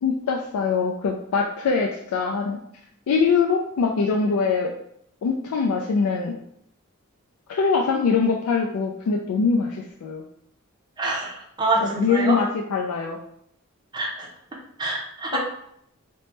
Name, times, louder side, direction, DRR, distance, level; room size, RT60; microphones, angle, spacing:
voice 1, 0.0-2.6 3.1-4.7 5.2-6.4 7.5-10.2 12.0-13.2 15.3-15.4, left 5 dB, 85° left, 1 dB, 0.3 m, -23 dB
voice 2, 11.0-12.4 13.9-14.3 14.8-15.4, right 2 dB, 20° right, -2 dB, 0.4 m, -26 dB
2.9 x 2.1 x 3.3 m, 0.72 s
head